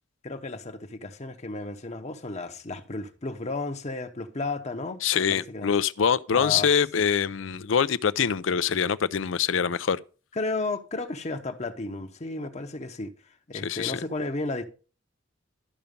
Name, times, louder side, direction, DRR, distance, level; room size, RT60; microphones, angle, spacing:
voice 1, 0.2-5.7 6.3-6.7 10.4-13.1 13.5-14.6, left 2 dB, 35° left, 0.8 m, -33 dB
voice 2, 5.0-10.0 13.6-14.0, left 7 dB, 85° left, 0.5 m, -24 dB
12.5 x 5.8 x 5.2 m
head